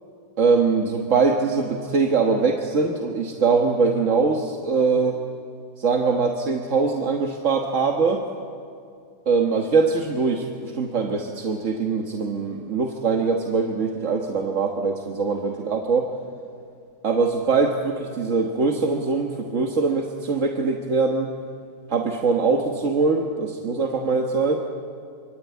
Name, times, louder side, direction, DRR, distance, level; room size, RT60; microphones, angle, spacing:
voice 1, 0.4-5.2 5.8-8.2 9.3-16.1 17.0-21.3 21.9-24.5, right 4 dB, 40° right, 2 dB, 1.5 m, -22 dB
25.5 x 25.0 x 8.3 m, 2.4 s
omnidirectional pair, 2.4 m